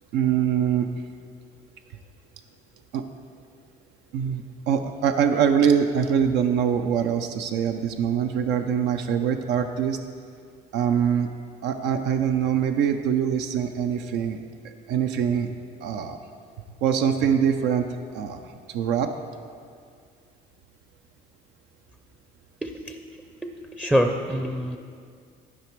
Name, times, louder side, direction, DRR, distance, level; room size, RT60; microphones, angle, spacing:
voice 1, 0.1-0.9 2.9-3.0 4.1-10.0 10.7-11.3 11.6-14.4 14.9-15.5 15.8-16.2 16.8-17.9 18.1-19.1, right 8 dB, 90° right, 6 dB, 0.5 m, -23 dB
voice 2, 22.6-23.0 23.4-24.8, equal, 5° right, 4 dB, 0.4 m, -25 dB
11.5 x 4.9 x 4.6 m, 2.2 s
cardioid pair, 110°, 17 cm